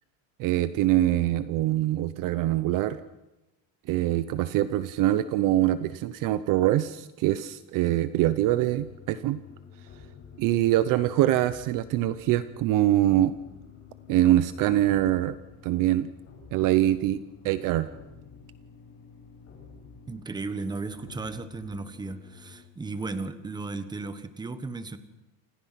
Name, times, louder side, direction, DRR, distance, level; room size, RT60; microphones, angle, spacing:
voice 1, 0.4-3.0 3.9-9.4 10.4-13.3 14.1-15.3 15.6-16.1 16.5-17.9, right 14 dB, 40° right, 13 dB, 0.8 m, -24 dB
sound 1, 8.4-22.6, left 6 dB, 30° left, 7.0 m, -50 dB
voice 2, 20.1-25.0, right 3 dB, 10° right, 11 dB, 1.3 m, -35 dB
29.0 x 27.0 x 5.9 m, 1.0 s
cardioid pair, 170°, 49 cm